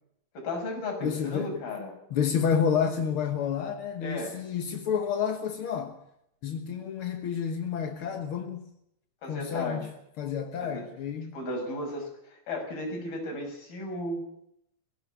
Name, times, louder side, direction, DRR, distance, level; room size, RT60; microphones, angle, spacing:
voice 1, 0.3-1.9 4.0-4.4 9.2-9.9 10.6-10.8 11.3-14.3, left 2 dB, 90° left, 8.0 m, -35 dB
voice 2, 1.0-1.6 2.1-6.0 6.4-8.7 9.2-9.9 10.2-11.4, left 7 dB, 60° left, 1.5 m, -29 dB
20.5 x 16.5 x 8.2 m
omnidirectional pair, 4.1 m